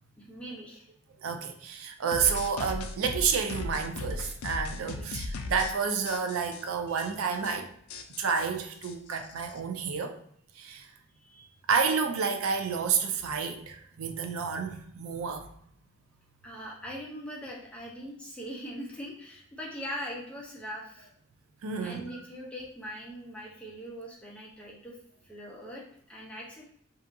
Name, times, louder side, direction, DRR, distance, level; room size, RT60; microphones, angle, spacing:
voice 1, 0.2-0.9 4.8-5.1 11.2-11.5 16.4-21.1 21.8-25.0 25.2-26.6, equal, 5° left, -3 dB, 0.4 m, -41 dB
voice 2, 1.2-7.7 8.2-10.2 10.6-10.9 11.7-15.4 21.6-22.1, right 6 dB, 75° right, 6 dB, 0.4 m, -30 dB
sound 1, 2.1-5.7 6.1-6.6 7.0-7.1 7.3-7.6 7.9-9.6, left 3 dB, 75° left, 0.3 m, -37 dB
2.7 x 2.4 x 2.5 m, 0.66 s
head